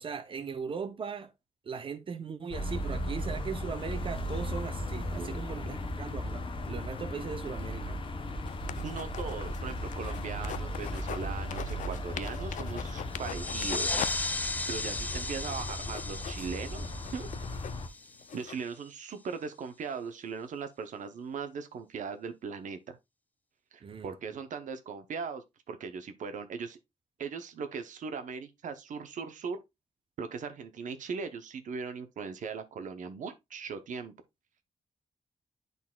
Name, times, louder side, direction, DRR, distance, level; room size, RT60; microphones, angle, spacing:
voice 1, 0.0-1.3 1.6-8.0 23.8-24.1, right 5 dB, 45° right, 0.8 m, -39 dB
sound 1, 2.5-17.9, left 1 dB, 40° left, 0.9 m, -36 dB
sound 2, 8.5-11.2 11.5-14.1 14.5-14.6 15.0-18.5, left 10 dB, 85° left, 0.4 m, -42 dB
voice 2, 8.8-14.0 14.7-17.3 18.3-23.0 23.7-26.8 27.2-29.6 30.2-34.1, right 5 dB, 80° right, 0.8 m, -39 dB
sound 3, 13.1-18.4, left 2 dB, 15° left, 0.4 m, -36 dB
11.0 x 4.0 x 2.3 m
wide cardioid pair, 145°, 13 cm